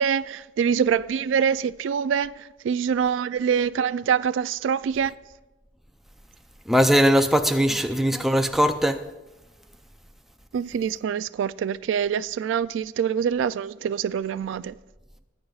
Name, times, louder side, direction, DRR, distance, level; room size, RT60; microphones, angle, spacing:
voice 1, 0.0-5.1 10.5-14.7, right 7 dB, 90° right, 0.3 m, -25 dB
voice 2, 6.7-9.1, equal, ahead, 0.4 m, -20 dB
18.5 x 9.0 x 2.4 m
head